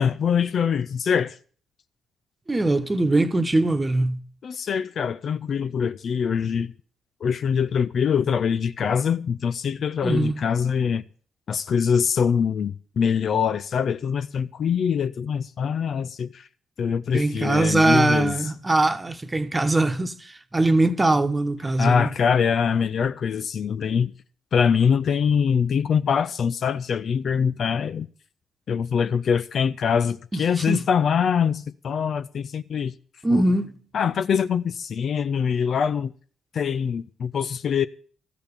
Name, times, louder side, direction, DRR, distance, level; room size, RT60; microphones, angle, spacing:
voice 1, 0.0-1.4 4.4-6.7 7.2-11.0 11.5-16.5 16.8-18.3 21.8-24.1 24.5-28.1 28.7-32.9 33.3-33.4 33.9-36.1 36.5-37.9, left 7 dB, 50° left, 0.6 m, -23 dB
voice 2, 2.5-4.2 10.0-10.4 17.1-22.1 30.3-30.9 33.2-33.8, right 2 dB, 20° right, 1.3 m, -22 dB
14.0 x 6.9 x 9.6 m
figure-of-eight pair, 40°, 0 cm